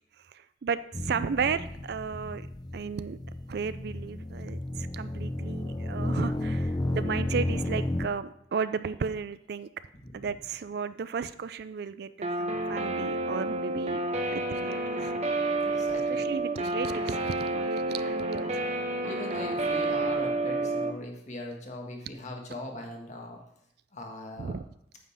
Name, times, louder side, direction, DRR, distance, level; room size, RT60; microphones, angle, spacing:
voice 1, 0.3-2.5 2.7-3.2 3.5-9.7 10.1-14.0 14.3-15.1 16.1-18.6 24.4-24.7, right 5 dB, 60° right, 14 dB, 0.4 m, -34 dB
sound 1, 0.9-8.1, left 1 dB, 20° left, 0.5 m, -32 dB
voice 2, 10.0-10.3 15.0-15.1 15.6-16.3 19.0-23.4 23.9-24.6, left 1 dB, 40° left, 2 dB, 1.5 m, -40 dB
Guitar, 12.2-20.9, right 2 dB, 35° right, 1.0 m, -29 dB
9.3 x 7.6 x 3.5 m, 0.74 s
head